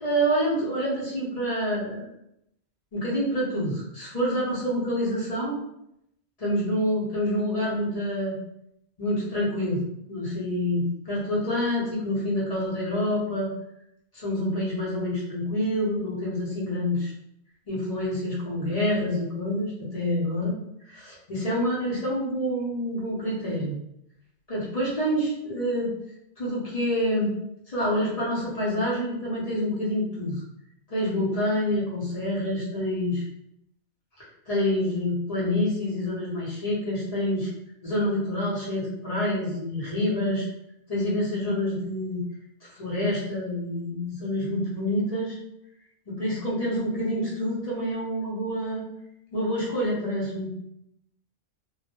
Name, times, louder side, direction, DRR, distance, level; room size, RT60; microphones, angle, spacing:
voice 1, 0.0-2.1 2.9-5.6 6.4-8.4 9.0-13.5 14.1-17.1 17.7-20.6 20.9-23.8 24.5-25.9 26.4-27.3 27.7-30.4 30.9-33.2 34.5-37.5 37.8-40.4 40.9-42.2 42.7-45.4 46.1-48.8 49.3-50.5, equal, 40° left, -7 dB, 0.7 m, -27 dB
2.2 x 2.0 x 2.9 m, 0.80 s
omnidirectional pair, 1.1 m